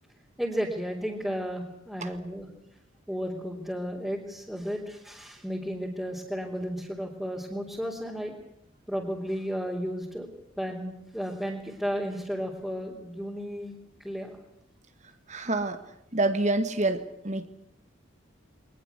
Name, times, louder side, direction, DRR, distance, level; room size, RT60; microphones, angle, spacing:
voice 1, 0.4-2.5 3.1-8.4 8.9-10.3 10.6-13.7 14.0-14.4, equal, ahead, -3 dB, 3.7 m, -33 dB
voice 2, 15.3-15.8 16.1-17.5, right 2 dB, 35° right, 9 dB, 1.8 m, -27 dB
24.0 x 20.0 x 8.3 m, 0.79 s
head